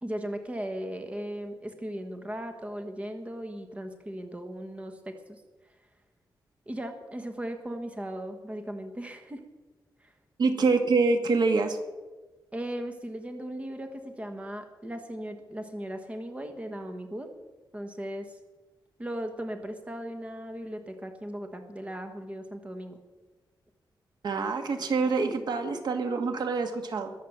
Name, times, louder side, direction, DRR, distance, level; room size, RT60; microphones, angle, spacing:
voice 1, 0.0-5.4 6.7-9.4 10.0-10.1 12.5-17.3 17.7-18.4 19.0-23.0, right 1 dB, 15° right, 6 dB, 1.4 m, -37 dB
voice 2, 10.4-11.8 24.2-27.1, right 4 dB, 60° right, 6 dB, 1.7 m, -26 dB
21.5 x 7.2 x 7.4 m, 1.2 s
wide cardioid pair, 145°, 8 cm